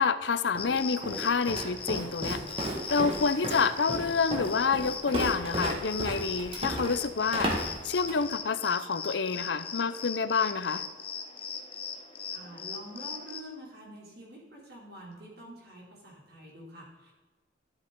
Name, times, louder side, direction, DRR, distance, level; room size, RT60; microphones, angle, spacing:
voice 1, 0.0-2.4 2.9-7.5 7.8-10.9, left 5 dB, 75° left, 13 dB, 0.6 m, -28 dB
Walk footsteps, 0.5-8.3, right 1 dB, 30° right, 1.7 m, -34 dB
sound 1, 0.6-13.4, left 6 dB, 30° left, 0.8 m, -39 dB
voice 2, 12.3-17.1, right 1 dB, 55° right, -2 dB, 3.2 m, -47 dB
12.0 x 7.9 x 3.8 m, 1.3 s
head